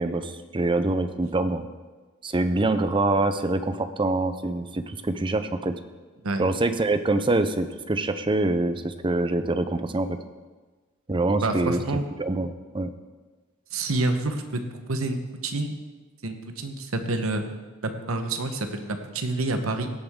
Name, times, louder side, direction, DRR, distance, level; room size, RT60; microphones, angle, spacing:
voice 1, 0.0-1.6 2.2-5.7 6.4-10.2 11.1-11.8 12.2-12.9, right 2 dB, 25° right, 10 dB, 0.6 m, -25 dB
voice 2, 11.4-12.0 13.7-15.7 16.2-17.4 18.1-19.9, right 2 dB, 75° right, 7 dB, 1.1 m, -28 dB
16.5 x 8.5 x 3.7 m, 1.3 s
head